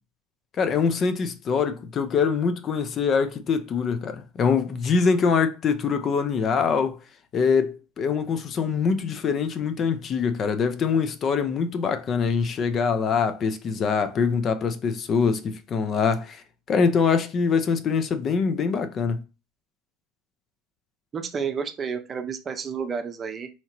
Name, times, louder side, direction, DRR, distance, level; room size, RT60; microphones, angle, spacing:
voice 1, 0.6-7.0 7.3-19.2, left 5 dB, 40° left, 0.5 m, -24 dB
voice 2, 21.1-23.5, right 6 dB, 30° right, 0.6 m, -30 dB
4.3 x 2.9 x 2.8 m
supercardioid pair, 105°, 0 cm